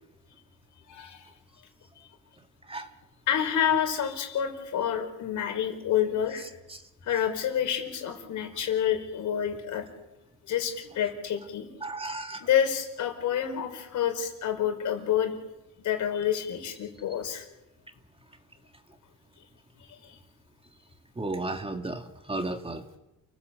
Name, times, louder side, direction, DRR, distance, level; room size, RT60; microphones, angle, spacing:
voice 1, 0.9-1.2 3.3-6.5 7.0-9.9 10.5-11.7 12.4-15.3 15.8-17.4, left 9 dB, 80° left, 5 dB, 4.9 m, -28 dB
voice 2, 11.8-12.5 21.2-23.0, right 2 dB, 20° right, 6 dB, 2.2 m, -34 dB
28.5 x 16.5 x 8.1 m, 0.99 s
cardioid pair, 90°, 30 cm